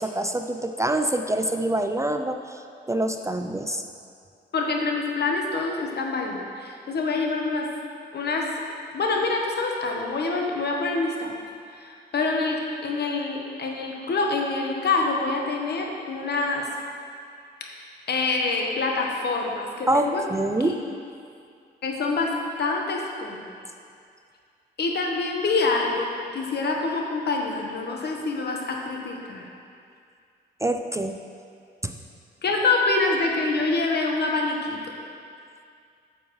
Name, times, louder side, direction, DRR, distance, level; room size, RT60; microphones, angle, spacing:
voice 1, 0.0-2.6 2.9-3.8 19.9-20.8 30.6-31.2 31.8-31.9, right 1 dB, 15° right, 6 dB, 0.4 m, -25 dB
voice 2, 4.5-7.7 8.1-8.5 8.9-11.3 11.7-16.7 18.1-20.2 20.6-20.8 21.8-22.3 22.6-23.6 24.8-26.1 26.3-29.4 32.4-34.9, left 3 dB, 60° left, 1 dB, 1.2 m, -26 dB
9.5 x 7.1 x 3.1 m, 2.3 s
cardioid pair, 70°, 19 cm